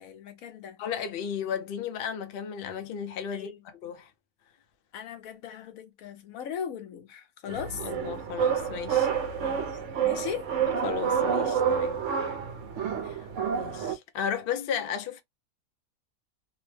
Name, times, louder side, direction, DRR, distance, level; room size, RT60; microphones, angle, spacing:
voice 1, 0.0-0.8 3.3-3.6 4.9-7.8 9.4-10.5, left 8 dB, 75° left, 1.1 m, -38 dB
voice 2, 0.8-4.1 7.4-9.1 10.6-12.0 13.0-13.3 13.5-15.2, left 8 dB, 55° left, 0.6 m, -34 dB
sound 1, 7.5-14.0, right 7 dB, 65° right, 0.9 m, -28 dB
2.9 x 2.0 x 3.1 m
omnidirectional pair, 1.5 m